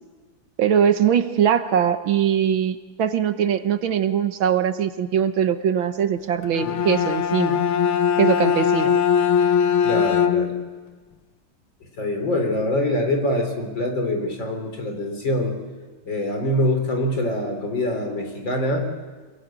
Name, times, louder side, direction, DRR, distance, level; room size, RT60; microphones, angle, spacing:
voice 1, 0.6-7.6 8.2-9.0, right 8 dB, 70° right, 9 dB, 1.9 m, -21 dB
Bowed string instrument, 6.4-10.7, left 8 dB, 80° left, 1.9 m, -20 dB
voice 2, 9.8-10.5 12.0-15.6 16.1-18.8, left 1 dB, 60° left, 4 dB, 4.8 m, -24 dB
27.0 x 22.0 x 9.1 m, 1.4 s
omnidirectional pair, 2.3 m